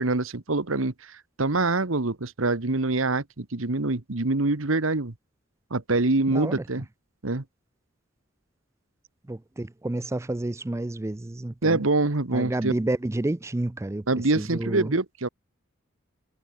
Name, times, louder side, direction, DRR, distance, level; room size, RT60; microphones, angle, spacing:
voice 1, 0.0-5.1 5.7-6.8 7.2-7.4 11.6-12.7 14.1-15.3, right 2 dB, 85° right, 1.5 m, -25 dB
voice 2, 6.3-6.6 9.3-11.8 12.3-14.1 14.4-15.0, right 1 dB, 15° right, 0.4 m, -30 dB
head